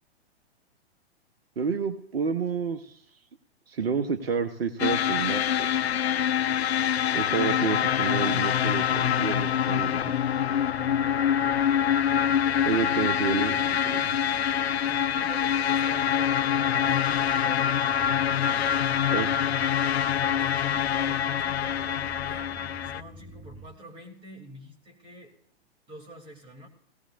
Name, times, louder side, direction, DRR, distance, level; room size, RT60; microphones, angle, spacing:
voice 1, 1.6-3.0 3.7-5.9 7.1-10.2 12.7-14.1 19.1-19.3, right 6 dB, 60° right, 7 dB, 1.1 m, -29 dB
sound 1, 4.8-23.0, left 9 dB, 70° left, 0.6 m, -25 dB
sound 2, 8.4-15.3, right 6 dB, ahead, 4.2 m, -55 dB
sound 3, 8.5-23.7, left 1 dB, 20° left, 3.3 m, -49 dB
voice 2, 12.2-12.7 14.8-17.8 20.3-25.3 25.9-26.7, right 1 dB, 15° right, 2 dB, 2.9 m, -47 dB
18.0 x 17.5 x 2.5 m, 0.68 s
figure-of-eight pair, 115°, 33 cm